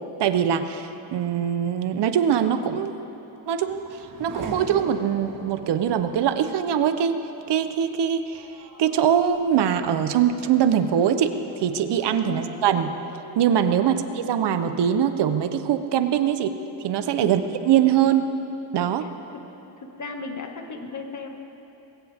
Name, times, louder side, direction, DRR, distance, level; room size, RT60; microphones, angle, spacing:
voice 1, 0.2-3.0 3.5-7.2 7.5-8.4 8.8-12.9 13.4-16.5 16.8-18.3 18.7-19.1, right 9 dB, 65° right, 9 dB, 1.0 m, -22 dB
Race car auto racing / Accelerating revving vroom, 3.0-16.1 16.5-17.2, right 3 dB, 45° right, 2.4 m, -44 dB
voice 2, 19.0-19.5 19.8-21.3, left 3 dB, 40° left, 3 dB, 2.0 m, -36 dB
21.0 x 16.5 x 3.6 m, 2.8 s
cardioid pair, 80°, 44 cm